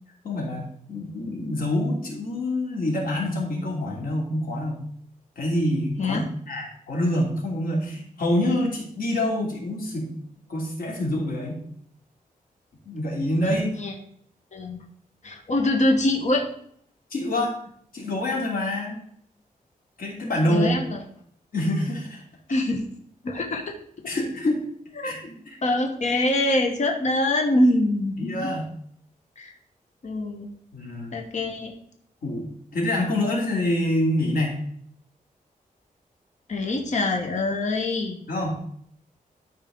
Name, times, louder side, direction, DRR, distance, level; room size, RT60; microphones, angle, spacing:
voice 1, 0.2-4.8 5.4-6.2 6.5-10.1 10.5-11.6 12.8-13.7 17.1-17.5 17.9-19.0 20.0-20.8 21.5-22.2 24.1-24.7 25.0-25.6 28.2-28.7 30.7-31.1 32.2-32.5 32.7-34.5 38.3-38.6, left 1 dB, 80° left, -2 dB, 2.7 m, -26 dB
voice 2, 13.4-13.9 14.5-14.8 15.2-16.5 20.4-21.0 22.5-22.8 23.2-23.7 25.0-25.1 25.6-28.5 29.4-29.5 30.0-30.5 31.1-31.7 36.5-38.2, left 1 dB, 55° left, 2 dB, 1.2 m, -24 dB
12.5 x 4.5 x 3.7 m, 0.64 s
wide cardioid pair, 145°, 15 cm